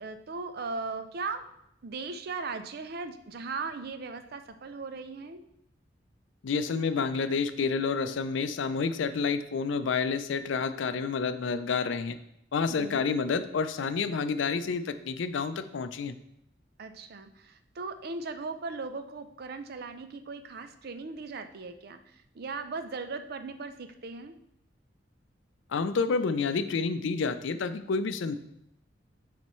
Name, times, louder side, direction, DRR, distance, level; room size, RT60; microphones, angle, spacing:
voice 1, 0.0-1.4 1.8-5.4 12.7-13.1 16.8-24.3, right 4 dB, 55° right, 9 dB, 0.5 m, -38 dB
voice 2, 6.4-12.2 12.5-16.1 25.7-28.4, left 5 dB, 80° left, 11 dB, 0.4 m, -29 dB
9.6 x 4.2 x 3.1 m, 0.77 s
head